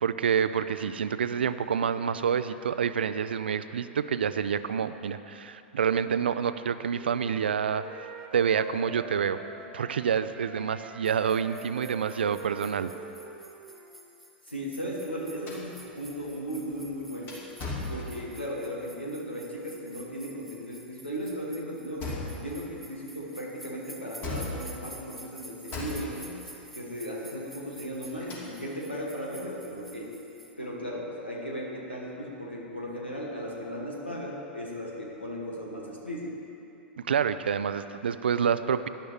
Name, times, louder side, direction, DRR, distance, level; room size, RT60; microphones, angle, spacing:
voice 1, 0.0-7.8 8.3-9.4 9.7-12.9 37.0-38.9, right 7 dB, 70° right, 13 dB, 0.5 m, -28 dB
Wind instrument woodwind instrument, 6.4-10.0 10.3-14.1, right 5 dB, 40° right, 1.4 m, -44 dB
sound 1, 11.0-30.5, right 1 dB, ahead, 1.2 m, -51 dB
voice 2, 14.5-17.4 17.9-26.3 26.7-30.1 30.6-36.3, equal, 85° left, -3 dB, 2.2 m, -36 dB
sound 2, 15.5-18.6 22.0-22.7 24.2-25.0 25.7-26.5 27.8-28.7, left 2 dB, 35° left, 2.8 m, -38 dB
17.5 x 11.5 x 3.4 m, 2.8 s
figure-of-eight pair, 90°, 6 cm